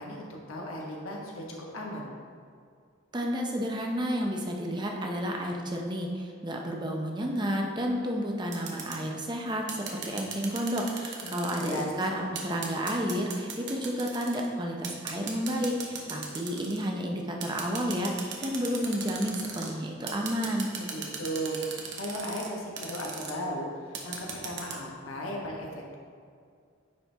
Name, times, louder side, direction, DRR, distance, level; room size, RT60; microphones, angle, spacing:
voice 1, 0.0-2.1 11.2-11.9 20.8-26.0, equal, 90° left, -1 dB, 1.3 m, -36 dB
voice 2, 3.1-20.7, equal, 20° right, 1 dB, 0.7 m, -31 dB
sound 1, 8.5-9.0 9.7-11.8 12.3-14.5 14.8-16.8 17.4-19.7 20.1-22.5 22.8-23.3 23.9-24.8, right 6 dB, 55° right, 0.9 m, -38 dB
9.6 x 4.4 x 3.5 m, 2.2 s
head